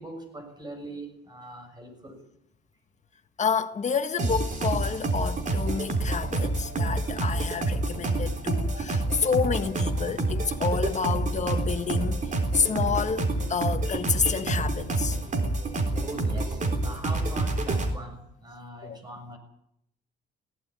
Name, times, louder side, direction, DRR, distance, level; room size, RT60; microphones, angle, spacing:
voice 1, 0.0-2.2 16.0-19.4, right 1 dB, 20° right, 6.6 m, -41 dB
voice 2, 3.4-15.2 18.8-19.0, left 6 dB, 35° left, 1.7 m, -29 dB
sound 1, 4.2-17.9, right 2 dB, 35° right, 3.7 m, -28 dB
17.5 x 15.5 x 9.9 m
cardioid pair, 120°, 21 cm